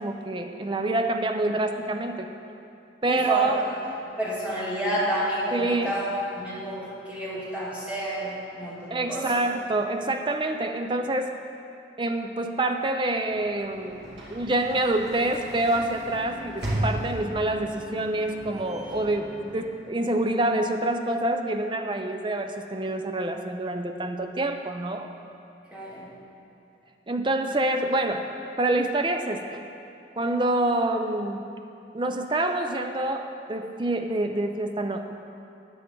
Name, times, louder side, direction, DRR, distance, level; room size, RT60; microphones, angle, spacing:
voice 1, 0.0-2.3 3.0-3.6 5.5-6.0 8.9-11.3 12.0-25.1 27.1-28.3 28.6-29.6 30.2-31.4 31.9-35.1, right 2 dB, 25° right, 5 dB, 0.5 m, -27 dB
voice 2, 3.1-3.5 4.2-6.1 6.3-9.4 25.7-26.1, equal, 10° right, -8 dB, 2.4 m, -30 dB
Sliding door / Slam, 13.2-20.2, right 1 dB, 70° right, 2.1 m, -36 dB
13.5 x 9.2 x 3.8 m, 2.6 s
head